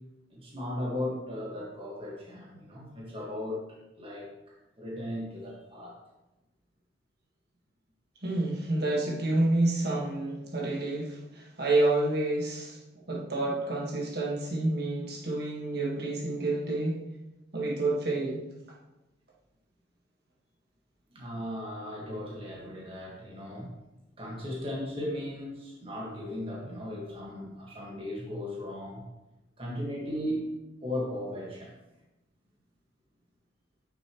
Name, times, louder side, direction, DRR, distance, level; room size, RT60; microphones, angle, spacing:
voice 1, 0.3-4.3 4.8-5.9 21.1-23.7 24.2-29.0 29.6-30.4 30.8-31.7, left 1 dB, 25° right, -3 dB, 1.6 m, -36 dB
voice 2, 8.2-12.8 13.1-17.0 17.5-18.4, right 2 dB, 50° right, -3 dB, 1.6 m, -29 dB
9.2 x 7.0 x 3.1 m, 1.0 s
head